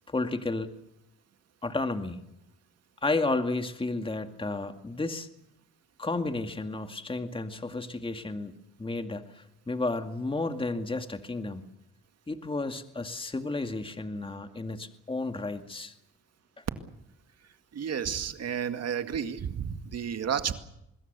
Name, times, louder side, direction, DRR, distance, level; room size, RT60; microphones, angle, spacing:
voice 1, 0.1-0.7 1.6-2.2 3.0-5.3 6.0-11.6 12.3-15.9, left 2 dB, 15° left, 7 dB, 2.2 m, -32 dB
voice 2, 17.7-20.6, right 8 dB, 55° right, 8 dB, 2.1 m, -31 dB
25.5 x 21.0 x 6.9 m, 0.82 s
cardioid pair, 90°, 30 cm